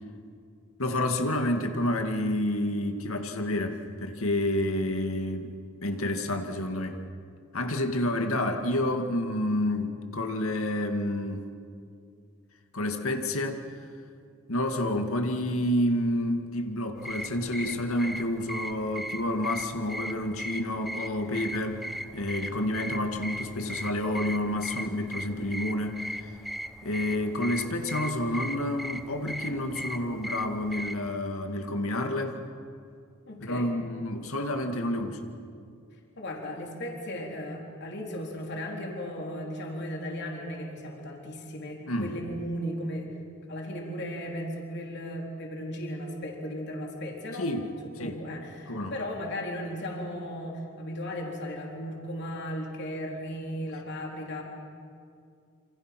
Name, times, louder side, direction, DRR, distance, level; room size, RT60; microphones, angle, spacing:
voice 1, 0.8-7.0 7.5-11.5 12.7-13.6 14.5-21.9 22.1-26.3 26.8-32.4 33.4-35.3 41.9-42.2 47.4-47.7 48.0-48.2 48.7-49.0, left 1 dB, 75° left, 5 dB, 2.2 m, -29 dB
sound 1, 17.0-31.1, equal, ahead, 0.7 m, -38 dB
voice 2, 33.3-33.7 36.2-43.1 43.5-47.5 47.8-54.4, equal, 50° left, 0 dB, 3.9 m, -36 dB
28.0 x 27.5 x 6.1 m, 2.4 s
head